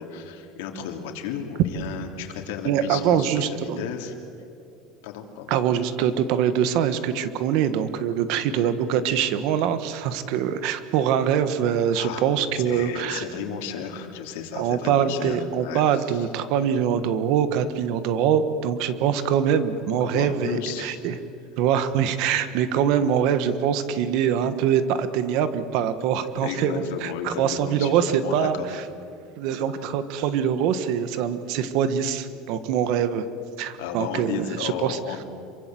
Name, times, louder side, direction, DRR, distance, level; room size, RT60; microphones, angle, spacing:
voice 1, 0.0-4.1 5.0-5.5 11.9-12.2 12.6-16.2 20.0-21.0 26.4-28.7 33.8-35.2, left 7 dB, 80° left, 3 dB, 3.1 m, -33 dB
voice 2, 2.6-3.8 5.5-13.2 14.5-21.2 21.6-28.8 29.4-33.3 33.6-35.0, right 8 dB, 50° right, 12 dB, 1.5 m, -24 dB
27.0 x 24.0 x 7.8 m, 2.6 s
cardioid pair, 180°, 0 cm